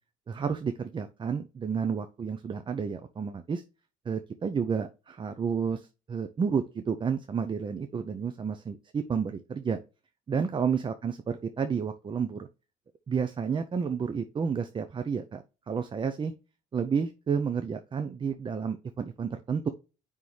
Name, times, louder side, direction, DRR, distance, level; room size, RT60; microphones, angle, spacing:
voice 1, 0.3-3.6 4.1-9.8 10.3-12.5 13.1-16.3 16.7-19.7, right 6 dB, 30° right, 9 dB, 0.6 m, -31 dB
9.3 x 3.6 x 3.2 m, 0.32 s
cardioid pair, 110°, 17 cm